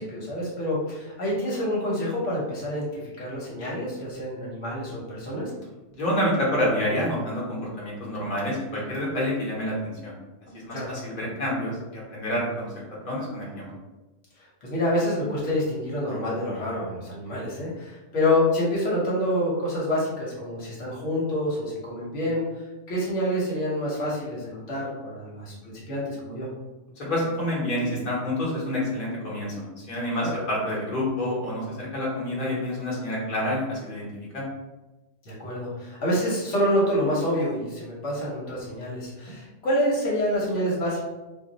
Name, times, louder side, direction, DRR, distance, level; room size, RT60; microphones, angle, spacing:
voice 1, 0.0-5.4 10.7-10.9 14.4-26.5 30.4-30.5 35.2-41.0, left 1 dB, 75° left, -5 dB, 1.2 m, -27 dB
voice 2, 5.9-10.1 10.5-12.7 13.0-13.8 27.0-34.1 34.3-34.4, left 1 dB, 45° left, -6 dB, 1.1 m, -28 dB
2.5 x 2.1 x 3.8 m, 1.1 s
omnidirectional pair, 1.2 m